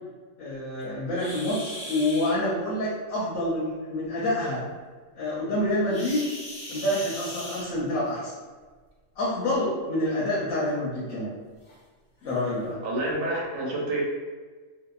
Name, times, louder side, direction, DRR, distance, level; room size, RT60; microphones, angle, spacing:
voice 1, 0.4-4.6 5.1-6.2 6.7-8.3 9.2-11.3 12.2-12.8, left 1 dB, 85° left, -7 dB, 1.1 m, -27 dB
paisaje-sonoro-uem-SHbiblioteca, 1.1-2.3 5.9-8.1 9.3-9.5 10.1-10.2 10.8-10.9 11.7-11.8 12.2-12.4, left 1 dB, 55° left, 0.8 m, -39 dB
voice 2, 12.8-14.0, right 1 dB, 70° right, -3 dB, 1.0 m, -29 dB
2.8 x 2.4 x 2.3 m, 1.4 s
omnidirectional pair, 1.3 m